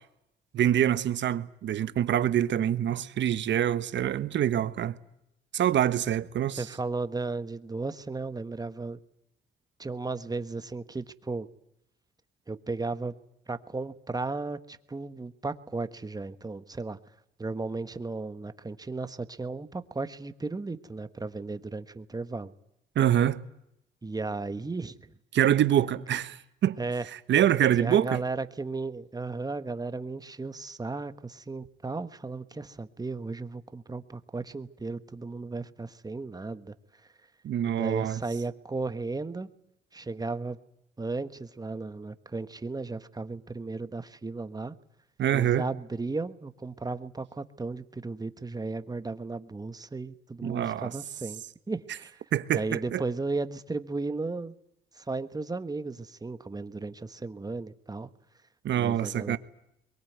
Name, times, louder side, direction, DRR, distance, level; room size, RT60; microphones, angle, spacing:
voice 1, 0.5-5.0 5.5-6.6 22.9-23.4 25.3-26.8 27.3-28.2 37.4-38.2 45.2-45.6 50.4-50.9 52.3-53.0 58.6-59.4, right 11 dB, 65° right, 1.3 m, -25 dB
voice 2, 6.6-9.0 9.8-11.5 12.5-13.1 13.5-17.0 17.4-22.5 24.0-25.0 26.8-27.0 27.8-36.7 37.6-39.5 39.9-40.6 41.0-44.7 45.3-52.2 52.5-54.5 55.0-58.1 58.7-59.4, right 3 dB, 20° right, 1.4 m, -35 dB
22.5 x 20.5 x 9.4 m
cardioid pair, 90°, 20 cm